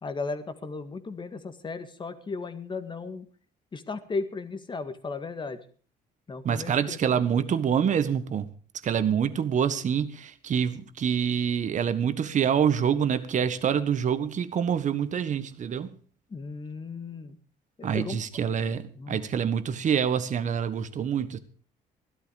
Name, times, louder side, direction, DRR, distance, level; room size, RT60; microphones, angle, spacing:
voice 1, 0.0-3.3 3.7-5.6 6.3-7.2 16.3-17.4 17.8-18.2 19.0-19.2, left 4 dB, 30° left, 1.9 m, -35 dB
voice 2, 6.4-8.5 8.8-15.9 17.8-21.4, right 8 dB, 45° right, 1.6 m, -26 dB
16.0 x 12.5 x 5.0 m
cardioid pair, 110°, 17 cm